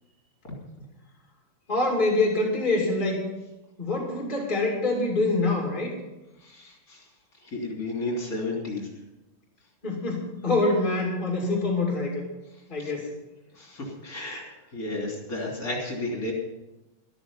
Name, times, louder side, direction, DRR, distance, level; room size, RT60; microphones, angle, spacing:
voice 1, 1.7-3.2 3.8-5.9 9.8-12.2 12.7-13.1, left 2 dB, 20° left, -1 dB, 2.7 m, -25 dB
voice 2, 6.4-7.0 7.4-8.9 12.8-12.9 13.6-14.4 14.7-16.3, left 2 dB, 40° left, -1 dB, 3.6 m, -32 dB
13.0 x 13.0 x 5.6 m, 1.0 s
omnidirectional pair, 2.4 m